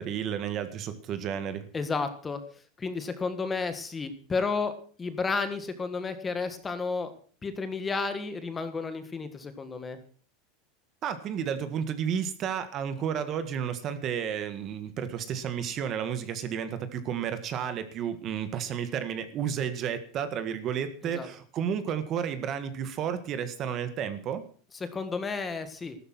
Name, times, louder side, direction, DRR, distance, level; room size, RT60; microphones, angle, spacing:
voice 1, 0.0-1.7 11.0-24.5, right 8 dB, 30° right, 11 dB, 1.7 m, -32 dB
voice 2, 1.7-2.4 2.8-7.1 7.4-10.0 21.0-21.3 24.8-26.0, left 4 dB, 15° left, 10 dB, 1.6 m, -32 dB
14.5 x 13.0 x 6.1 m, 0.42 s
supercardioid pair, 165°, 0 cm